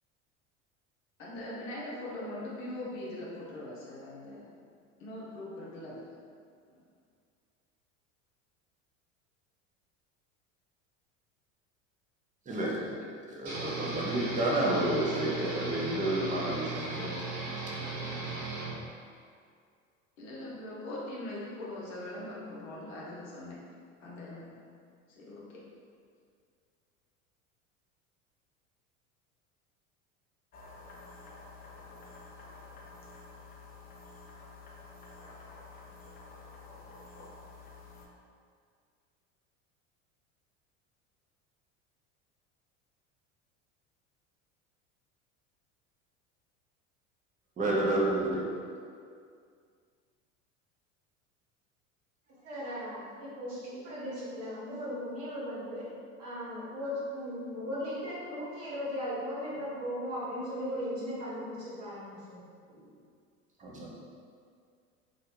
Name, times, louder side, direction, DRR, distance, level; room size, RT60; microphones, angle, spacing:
voice 1, 1.2-4.5 5.0-6.1 20.2-23.6 24.0-24.8 25.2-25.4, left 1 dB, 80° left, -5 dB, 0.7 m, -41 dB
voice 2, 12.5-12.9 13.3-17.4 17.7-18.3 47.6-48.4 63.6-63.9, right 1 dB, 20° right, -4 dB, 0.6 m, -30 dB
sound 1, 13.5-18.7, right 3 dB, 85° right, 0.8 m, -37 dB
sound 2, 30.5-38.1, left 3 dB, 25° left, 0.4 m, -50 dB
voice 3, 52.4-55.9 56.2-62.4 62.7-62.9, equal, 65° right, -8 dB, 1.2 m, -37 dB
2.5 x 2.1 x 2.9 m, 2.2 s
hypercardioid pair, 80°, 40 cm